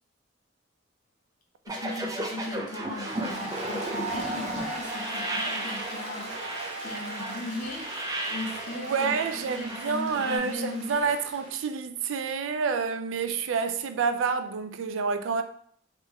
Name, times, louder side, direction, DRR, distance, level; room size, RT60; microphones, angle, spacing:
voice 1, 1.7-6.4 6.8-7.8 8.3-11.1, left 2 dB, 45° left, 0.8 m, -38 dB
sound 1, 1.7-10.4, right 1 dB, 20° right, 0.5 m, -35 dB
Applause, 2.8-11.6, right 2 dB, 35° right, 0.9 m, -38 dB
voice 2, 8.7-15.4, right 5 dB, 75° right, 0.4 m, -28 dB
3.3 x 3.1 x 3.6 m
head